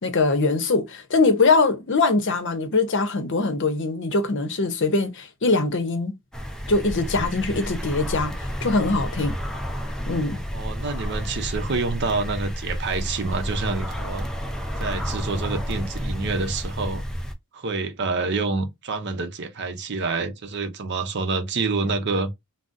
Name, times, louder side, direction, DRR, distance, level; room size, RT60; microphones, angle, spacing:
voice 1, 0.0-6.2 6.7-9.4 10.1-10.4, left 3 dB, 60° left, 0.7 m, -22 dB
sound 1, 6.3-17.3, equal, 5° left, 0.4 m, -31 dB
voice 2, 10.5-14.3 14.8-17.0 17.5-22.3, right 3 dB, 55° right, 0.6 m, -27 dB
3.8 x 2.0 x 2.4 m
head